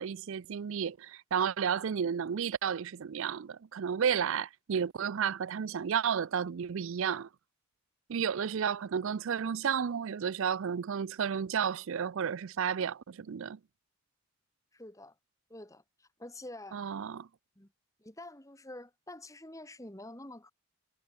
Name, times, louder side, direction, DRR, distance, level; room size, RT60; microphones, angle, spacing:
voice 1, 0.0-7.3 8.1-13.6 16.7-17.3, right 7 dB, 65° right, 0.4 m, -32 dB
voice 2, 14.7-15.2 15.5-16.8 17.6-17.7 18.0-20.5, left 1 dB, 15° left, 2.1 m, -47 dB
head